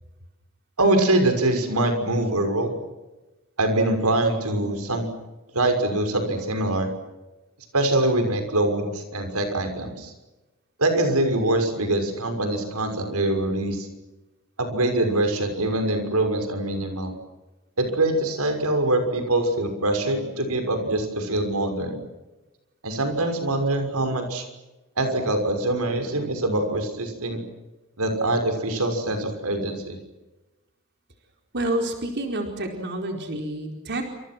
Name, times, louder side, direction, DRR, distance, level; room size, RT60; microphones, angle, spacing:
voice 1, 0.8-2.8 3.6-5.1 5.5-6.9 7.7-10.1 10.8-13.9 14.6-17.2 17.8-22.0 22.8-24.4 25.0-27.4 28.0-30.0, right 1 dB, 90° right, 7 dB, 6.1 m, -24 dB
voice 2, 31.5-34.1, right 1 dB, 50° right, 3 dB, 4.5 m, -28 dB
29.5 x 27.5 x 6.2 m, 1.1 s
head